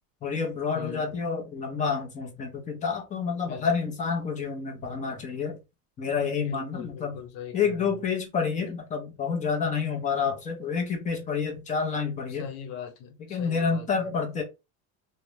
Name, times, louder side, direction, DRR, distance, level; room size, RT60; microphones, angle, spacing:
voice 1, 0.2-5.6 6.0-7.2 7.5-12.5 13.2-14.4, left 5 dB, 20° left, 0.3 m, -29 dB
voice 2, 0.7-1.1 3.5-3.7 6.4-8.1 12.3-14.1, left 8 dB, 70° left, 0.9 m, -41 dB
2.3 x 2.1 x 3.0 m
cardioid pair, 140°, 47 cm